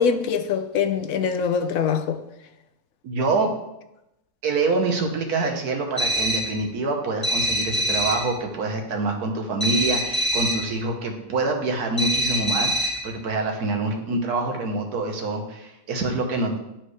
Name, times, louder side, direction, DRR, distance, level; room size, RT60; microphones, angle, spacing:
voice 1, 0.0-2.2, left 6 dB, 70° left, 0.9 m, -23 dB
voice 2, 3.0-3.5 4.4-16.6, right 3 dB, 85° right, 1.6 m, -26 dB
sound 1, 6.0-6.6 7.2-8.3 9.6-10.7 12.0-13.1, right 1 dB, 15° left, 1.3 m, -24 dB
11.5 x 4.5 x 3.2 m
omnidirectional pair, 1.6 m